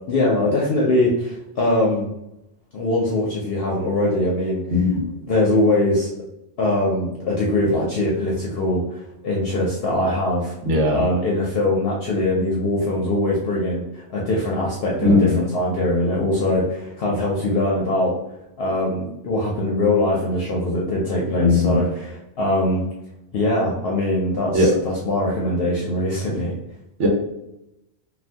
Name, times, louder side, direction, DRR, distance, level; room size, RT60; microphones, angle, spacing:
voice 1, 0.1-2.1 2.7-4.6 5.3-6.1 6.6-9.0 9.2-10.5 10.9-18.1 18.6-22.8 23.3-26.5, left 1 dB, 60° left, -4 dB, 0.8 m, -22 dB
voice 2, 4.7-5.0 10.6-11.0 15.0-15.4 21.4-21.8 24.5-24.7 27.0-27.1, left 2 dB, 80° right, 0 dB, 1.1 m, -18 dB
2.6 x 2.4 x 3.3 m, 0.85 s
omnidirectional pair, 1.2 m